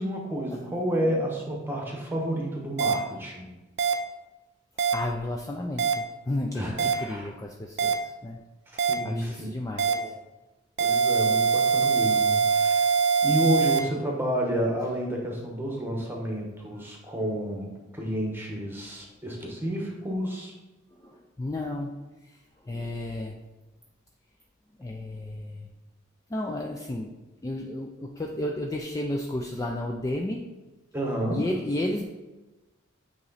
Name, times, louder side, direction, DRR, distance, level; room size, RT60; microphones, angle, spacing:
voice 1, 0.0-3.5 6.5-7.2 8.7-9.5 9.9-10.1 10.8-20.5 30.9-31.4, equal, 10° right, -1 dB, 1.1 m, -30 dB
sound 1, 2.8-2.9 3.8-3.9 4.8-4.9 5.8-5.9 6.8-6.9 7.8-7.9 8.8-8.9 9.8-9.9 10.8-13.8, right 6 dB, 55° right, 0.5 m, -22 dB
voice 2, 4.9-8.4 9.0-10.1 16.8-16.9 20.9-21.9 22.2-22.4 22.6-23.3 24.8-25.7 26.3-27.1 27.4-30.4 31.3-32.0, left 1 dB, 15° left, 0 dB, 0.3 m, -32 dB
8.4 x 3.0 x 4.0 m, 1.1 s
head